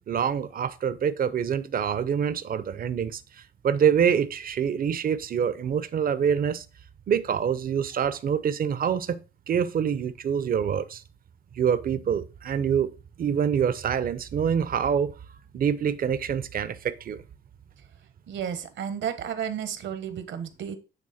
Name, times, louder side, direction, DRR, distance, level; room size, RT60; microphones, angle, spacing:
voice 1, 0.1-3.2 3.6-6.6 7.1-9.2 9.5-11.0 11.6-12.9 13.2-15.1 15.5-17.2, right 8 dB, 45° right, 0.7 m, -25 dB
voice 2, 18.3-20.8, right 8 dB, 70° right, 1.1 m, -32 dB
9.1 x 3.4 x 4.2 m
cardioid pair, 90°, 20 cm